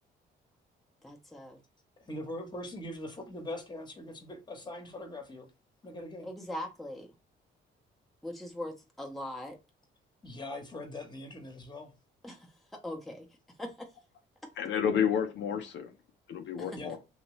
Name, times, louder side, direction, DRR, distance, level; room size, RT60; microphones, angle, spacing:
voice 1, 1.0-1.6 6.2-7.1 8.2-9.6 12.2-13.3 13.6-13.9 14.4-14.5 16.6-16.8, left 1 dB, ahead, 0.8 m, -41 dB
voice 2, 2.0-5.5 5.8-6.3 10.2-11.9 16.7-17.0, left 1 dB, 20° left, 1.1 m, -41 dB
voice 3, 14.6-15.9 16.3-17.0, left 8 dB, 70° left, 0.6 m, -30 dB
2.9 x 2.8 x 3.0 m
cardioid pair, 90°, 20 cm